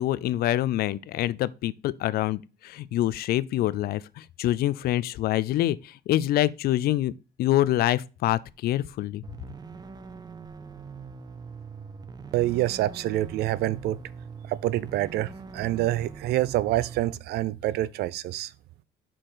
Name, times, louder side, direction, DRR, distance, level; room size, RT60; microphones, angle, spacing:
voice 1, 0.0-7.1 7.4-9.2, left 14 dB, 65° left, 0.5 m, -26 dB
sound 1, 9.2-17.2, right 5 dB, 25° right, 0.6 m, -43 dB
voice 2, 12.3-14.0 14.5-18.5, right 15 dB, 75° right, 0.5 m, -26 dB
5.8 x 4.5 x 4.8 m
cardioid pair, 110°, 17 cm